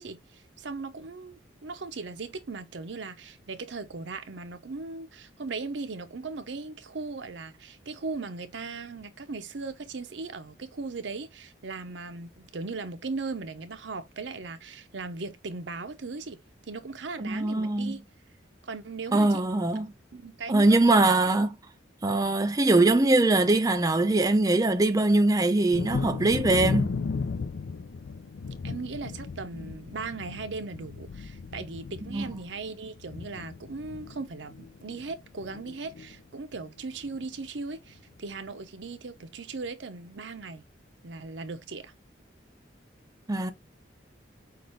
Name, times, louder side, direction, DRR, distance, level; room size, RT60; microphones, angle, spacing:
voice 1, 0.0-18.0 18.6-19.4 20.1-20.8 28.6-40.6 41.0-41.9, right 4 dB, 75° right, 0.7 m, -38 dB
voice 2, 17.2-17.9 19.1-19.9 20.5-21.6 22.0-26.9 32.1-32.3 43.3-43.5, right 2 dB, 20° right, 0.4 m, -22 dB
Thunder, 25.7-35.1 35.4-36.1 36.5-36.6 37.0-37.2, left 4 dB, 90° left, 0.5 m, -35 dB
5.8 x 2.5 x 3.1 m
head